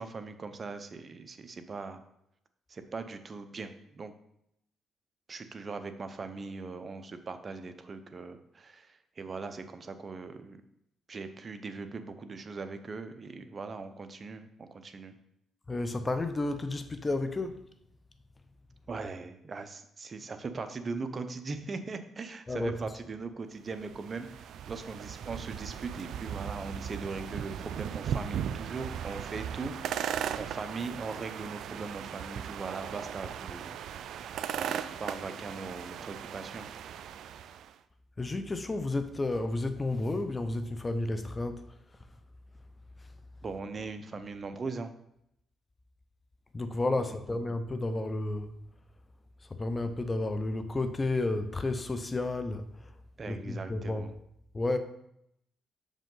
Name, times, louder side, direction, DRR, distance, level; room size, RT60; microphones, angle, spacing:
voice 1, 0.0-2.0 2.7-4.1 5.3-10.6 11.1-15.1 18.9-29.9 30.4-33.7 34.0-36.7 43.4-44.9 53.2-54.1, right 4 dB, 35° right, 0.7 m, -40 dB
voice 2, 15.7-17.7 22.5-22.8 38.2-41.7 46.5-48.5 49.4-52.9 53.3-54.1 54.5-54.8, left 2 dB, 25° left, 0.6 m, -32 dB
sound 1, 23.7-37.7, right 9 dB, 75° right, 0.3 m, -38 dB
6.4 x 5.2 x 3.8 m
cardioid pair, 90°, 0 cm